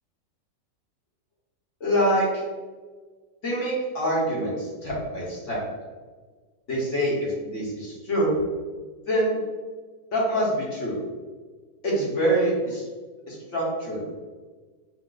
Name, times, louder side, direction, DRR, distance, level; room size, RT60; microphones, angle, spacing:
voice 1, 1.8-2.4 3.4-5.6 6.7-8.3 9.1-9.4 10.1-11.0 11.8-12.8 13.3-14.0, equal, 50° left, -5 dB, 1.2 m, -25 dB
4.8 x 2.0 x 3.8 m, 1.4 s
omnidirectional pair, 1.9 m